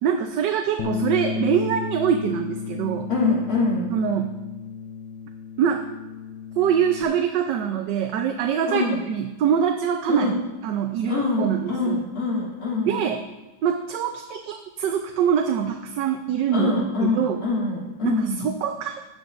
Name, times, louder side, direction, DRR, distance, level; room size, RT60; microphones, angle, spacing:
voice 1, 0.0-3.1 3.9-4.3 5.6-5.8 6.6-10.3 10.6-12.0 12.8-13.2 13.6-16.7 17.0-17.4 18.0-19.0, right 8 dB, 75° right, 5 dB, 1.3 m, -24 dB
Bass guitar, 0.8-7.0, left 6 dB, 85° left, 1.4 m, -33 dB
voice 2, 3.1-3.9 8.7-9.0 10.1-10.4 11.1-13.1 16.5-18.5, left 3 dB, 55° left, -6 dB, 3.4 m, -25 dB
16.0 x 10.5 x 2.5 m, 1.1 s
omnidirectional pair, 1.9 m